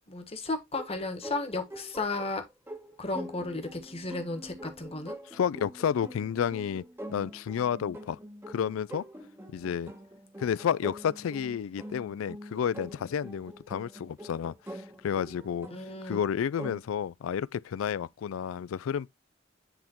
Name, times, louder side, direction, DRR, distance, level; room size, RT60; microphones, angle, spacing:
voice 1, 0.1-2.4 3.0-5.2 15.7-16.2, left 2 dB, 30° left, 1.2 m, -34 dB
sound 1, 0.7-16.8, equal, 10° right, 1.0 m, -45 dB
voice 2, 5.3-6.8 7.1-8.2 8.5-9.0 9.5-9.9 10.4-15.7 16.0-19.1, left 8 dB, 85° left, 0.3 m, -31 dB
10.0 x 3.6 x 2.9 m
head